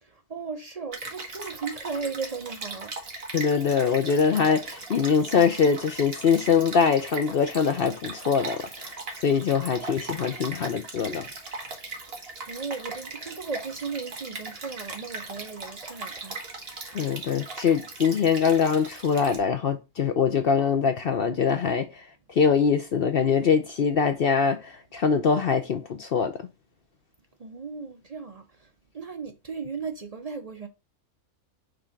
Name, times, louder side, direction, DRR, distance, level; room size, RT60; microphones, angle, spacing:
voice 1, 0.0-2.9 12.5-16.4 27.4-28.7 28.9-30.7, right 5 dB, 60° right, 0.4 m, -36 dB
Stream, 0.9-19.4, right 3 dB, 45° right, 1.5 m, -39 dB
voice 2, 3.3-9.0 9.2-11.3 16.9-26.4, left 6 dB, 55° left, 0.6 m, -23 dB
5.2 x 3.6 x 5.7 m
omnidirectional pair, 1.5 m